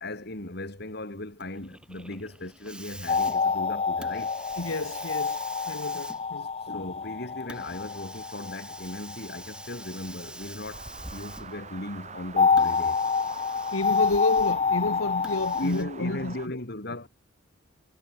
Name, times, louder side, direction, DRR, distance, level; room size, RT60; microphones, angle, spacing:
voice 1, 0.0-4.3 6.6-13.0 15.5-17.1, left 1 dB, 50° left, 2.6 m, -37 dB
Hiss, 1.4-11.7 12.5-14.7 15.2-15.8, right 1 dB, 5° right, 3.4 m, -45 dB
sound 1, 3.1-9.7 12.4-15.7, left 5 dB, 30° left, 0.5 m, -27 dB
voice 2, 4.6-5.4 5.7-6.5 13.7-16.6 16.9-17.0, left 2 dB, 80° left, 1.6 m, -30 dB
sound 2, 10.7-16.5, right 4 dB, 35° right, 7.0 m, -45 dB
head